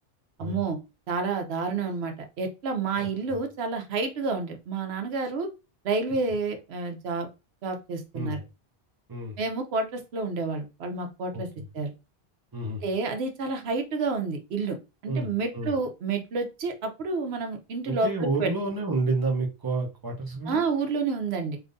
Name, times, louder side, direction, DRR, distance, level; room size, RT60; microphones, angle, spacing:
voice 1, 0.4-0.8 1.1-5.5 5.8-7.3 7.6-8.4 9.4-11.5 11.7-11.9 12.8-14.8 15.0-18.5 20.5-21.6, right 4 dB, 80° right, 5 dB, 0.9 m, -29 dB
voice 2, 3.0-3.4 8.1-8.4 9.1-9.4 11.3-11.7 12.5-12.8 15.1-15.7 17.8-20.7, right 3 dB, 25° right, 1 dB, 0.7 m, -30 dB
3.5 x 2.6 x 2.5 m, 0.27 s
omnidirectional pair, 1.1 m